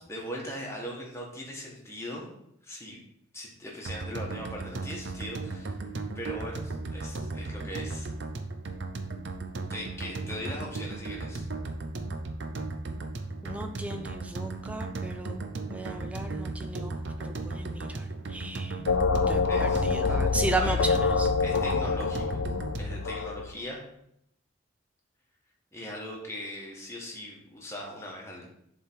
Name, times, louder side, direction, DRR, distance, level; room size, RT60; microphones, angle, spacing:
voice 1, 0.1-2.3 2.6-3.0 3.3-5.8 6.1-8.1 9.7-11.5 19.5-20.8 21.4-22.5 22.8-23.8 25.7-28.4, equal, 15° left, -2 dB, 1.3 m, -40 dB
sound 1, 3.9-23.1, right 3 dB, 55° right, 0.6 m, -36 dB
voice 2, 13.4-15.4 15.7-16.9 17.2-18.8 19.3-19.4 19.8-21.3, right 2 dB, 5° right, 6 dB, 0.4 m, -34 dB
sound 2, 18.9-23.5, left 4 dB, 65° left, 0.4 m, -26 dB
7.4 x 3.7 x 4.4 m, 0.75 s
head